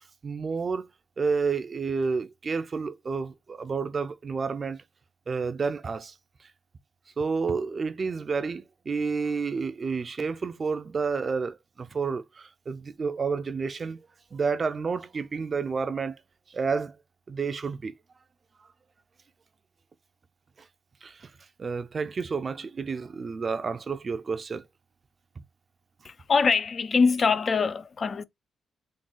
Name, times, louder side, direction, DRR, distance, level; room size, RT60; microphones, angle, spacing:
voice 1, 0.2-0.9 1.2-4.8 5.3-6.1 7.2-14.0 14.3-16.2 16.5-17.0 17.3-17.9 21.0-21.3 21.6-24.6, right 5 dB, 40° right, 0.5 m, -30 dB
voice 2, 26.0-28.2, left 5 dB, 45° left, 0.4 m, -23 dB
3.9 x 2.3 x 3.8 m
cardioid pair, 100°, 0 cm